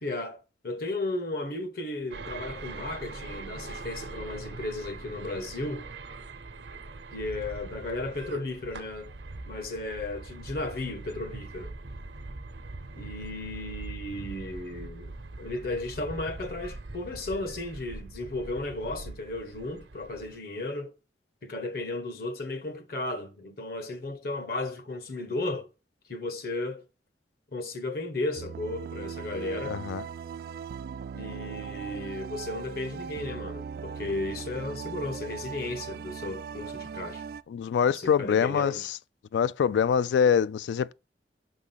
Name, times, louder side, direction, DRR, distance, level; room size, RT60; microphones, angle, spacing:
voice 1, 0.0-5.9 7.1-9.1 9.5-11.7 12.9-15.1 15.4-20.9 21.4-25.7 26.1-26.8 27.5-29.8 31.1-37.2 37.9-38.9, left 2 dB, 55° left, 0.9 m, -34 dB
sound 1, 2.1-20.4, right 3 dB, 85° right, 0.8 m, -42 dB
sound 2, 28.4-37.4, right 6 dB, 55° right, 0.3 m, -39 dB
voice 2, 29.7-30.0 37.5-38.7 39.3-40.9, left 7 dB, 85° left, 0.3 m, -24 dB
5.9 x 3.7 x 5.6 m
head